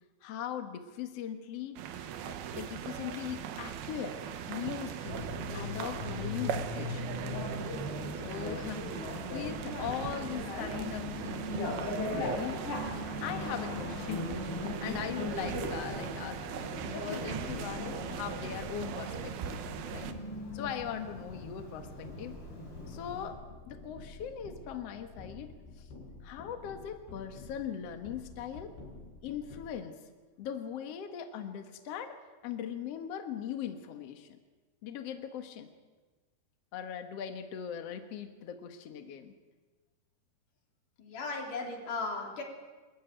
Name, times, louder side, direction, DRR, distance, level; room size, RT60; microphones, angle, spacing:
voice 1, 0.2-4.2 4.5-7.1 8.1-12.6 13.2-20.2 20.5-22.4 22.9-23.4 23.7-25.9 26.2-28.7 29.2-30.0 30.4-34.4 34.8-35.7 36.7-39.3, left 9 dB, 90° left, 6 dB, 1.3 m, -40 dB
sound 1, 1.8-20.1, right 8 dB, 70° right, 2.8 m, -40 dB
Bicycle, 5.1-23.3, left 2 dB, 30° left, 5.7 m, -39 dB
sound 2, 10.5-29.7, left 3 dB, 60° left, 6.7 m, -51 dB
voice 2, 16.9-17.3 41.0-42.4, left 3 dB, 45° left, 0 dB, 4.7 m, -37 dB
26.0 x 14.5 x 9.3 m, 1.3 s
omnidirectional pair, 5.3 m